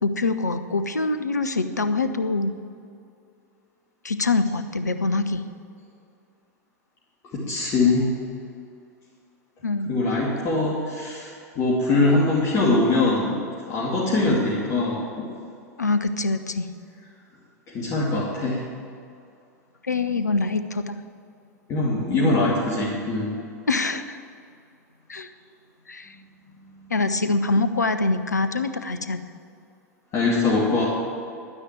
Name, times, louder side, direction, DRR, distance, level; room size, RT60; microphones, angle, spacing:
voice 1, 0.0-2.5 4.0-5.4 9.6-9.9 15.8-16.7 19.8-21.0 23.7-24.2 25.1-25.3 25.9-26.1 26.9-29.2, left 3 dB, 80° left, 10 dB, 0.7 m, -24 dB
voice 2, 7.3-8.1 9.9-11.3 11.6-13.4 13.7-15.3 17.7-18.6 21.7-23.3 30.1-30.8, left 2 dB, 35° left, -6 dB, 2.5 m, -22 dB
11.5 x 9.9 x 7.5 m, 2.5 s
figure-of-eight pair, 90°, 9 cm